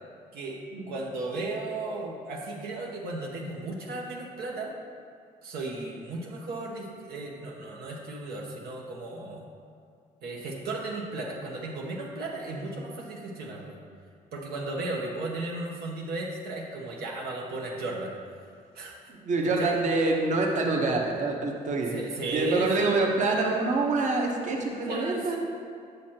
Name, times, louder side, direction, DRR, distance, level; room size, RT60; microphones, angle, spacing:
voice 1, 0.9-4.8 5.4-9.4 10.2-13.8 14.3-18.1 18.7-19.1 19.5-19.8 21.9-22.9 24.8-25.4, right 2 dB, 75° right, -2 dB, 0.9 m, -35 dB
voice 2, 19.2-21.9 22.3-25.4, right 3 dB, 50° right, 0 dB, 1.0 m, -26 dB
8.1 x 6.4 x 2.9 m, 2.3 s
cardioid pair, 90°, 16 cm